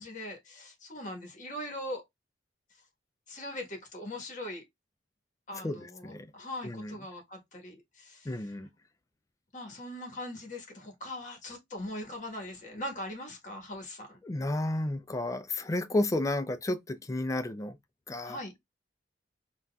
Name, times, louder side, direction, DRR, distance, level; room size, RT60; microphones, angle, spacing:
voice 1, 0.0-2.0 3.3-4.6 5.5-8.5 9.5-14.2 18.2-18.5, left 1 dB, 45° left, 1.2 m, -41 dB
voice 2, 5.5-6.3 6.6-6.9 8.3-8.7 14.2-17.8 18.1-18.4, left 1 dB, 20° left, 0.3 m, -32 dB
3.9 x 2.3 x 2.2 m
head